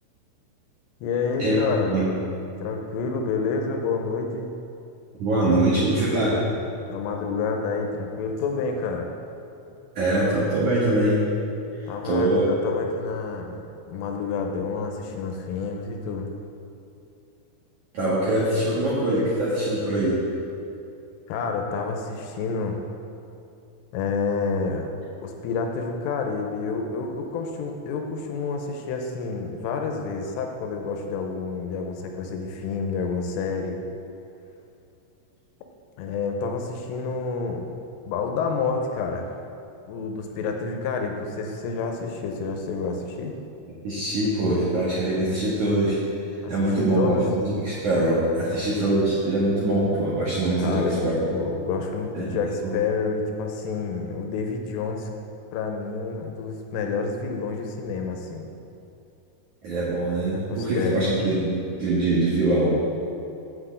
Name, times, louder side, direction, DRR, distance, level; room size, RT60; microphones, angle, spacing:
voice 1, 1.0-2.0 2.6-4.6 6.9-9.1 11.9-16.3 21.3-22.8 23.9-24.9 25.2-33.8 36.0-37.7 38.1-39.3 39.9-43.4 46.4-47.2 50.6-55.1 55.5-58.5 60.3-61.2, left 4 dB, 85° left, 3 dB, 3.2 m, -29 dB
voice 2, 5.2-6.4 10.0-11.3 11.8-12.5 17.9-20.2 43.8-46.0 46.5-51.2 52.1-52.7 59.6-62.7, right 1 dB, 60° right, -9 dB, 2.1 m, -23 dB
8.2 x 6.0 x 8.0 m, 2.7 s
omnidirectional pair, 5.8 m